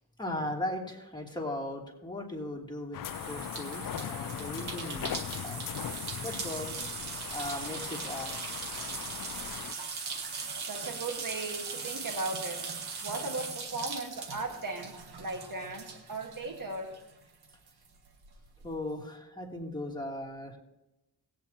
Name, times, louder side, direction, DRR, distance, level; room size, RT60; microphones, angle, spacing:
voice 1, 0.2-5.6 6.2-6.8 7.3-8.3 18.6-20.6, left 1 dB, 10° left, 0 dB, 2.8 m, -38 dB
sound 1, 2.9-9.7, left 10 dB, 60° left, 0.5 m, -40 dB
sound 2, 3.1-17.1 17.4-18.7, right 5 dB, 80° right, 1.5 m, -40 dB
voice 2, 10.3-12.7 13.0-16.9, right 3 dB, 60° right, 4 dB, 1.7 m, -37 dB
18.5 x 8.9 x 2.9 m, 0.95 s
cardioid pair, 50°, 38 cm